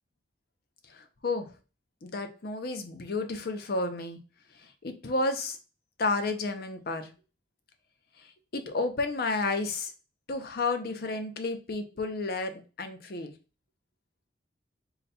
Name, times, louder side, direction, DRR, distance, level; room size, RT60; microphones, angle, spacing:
voice 1, 0.9-1.5 2.0-4.2 4.8-5.6 6.0-7.1 8.5-9.9 10.3-13.3, left 3 dB, 55° left, 7 dB, 0.6 m, -31 dB
3.9 x 2.2 x 4.1 m, 0.33 s
head